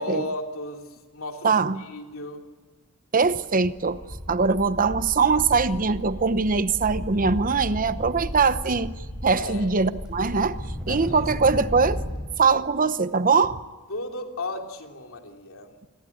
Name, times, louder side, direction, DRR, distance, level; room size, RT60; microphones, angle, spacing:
voice 1, 0.0-2.5 9.3-9.7 10.9-11.2 13.9-15.7, left 2 dB, 65° left, 3.3 m, -35 dB
voice 2, 1.4-1.8 3.1-4.0 4.3-8.9 9.2-12.0 12.4-13.6, right 4 dB, 40° right, 0.8 m, -22 dB
sound 1, 3.4-3.5 3.8-12.2, equal, 5° right, 5.5 m, -34 dB
28.0 x 21.5 x 8.7 m
head